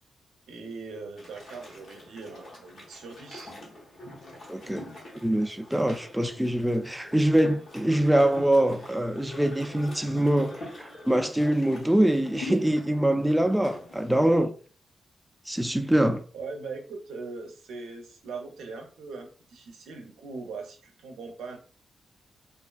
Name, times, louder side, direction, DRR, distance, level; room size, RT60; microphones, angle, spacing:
voice 1, 0.5-3.5 16.3-21.6, right 4 dB, 85° right, 0.5 m, -40 dB
sound 1, 1.2-14.1, left 1 dB, 70° left, 1.1 m, -44 dB
voice 2, 4.5-4.8 5.2-14.5 15.5-16.2, right 1 dB, 5° right, 0.3 m, -24 dB
2.4 x 2.3 x 2.2 m
supercardioid pair, 50°, 0 cm